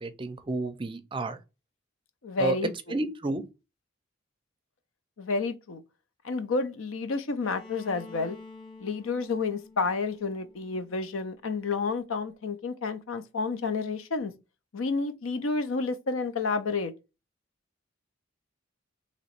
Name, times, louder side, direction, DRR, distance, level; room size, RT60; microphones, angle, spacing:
voice 1, 0.0-1.4 2.4-2.6 2.9-3.4, right 3 dB, 25° right, 0.4 m, -31 dB
voice 2, 2.2-3.0 5.2-5.8 6.2-8.4 8.8-14.3 14.7-16.9, left 4 dB, 80° left, 0.6 m, -30 dB
Bowed string instrument, 7.4-11.3, left 3 dB, 25° left, 1.0 m, -49 dB
3.0 x 2.9 x 4.3 m
head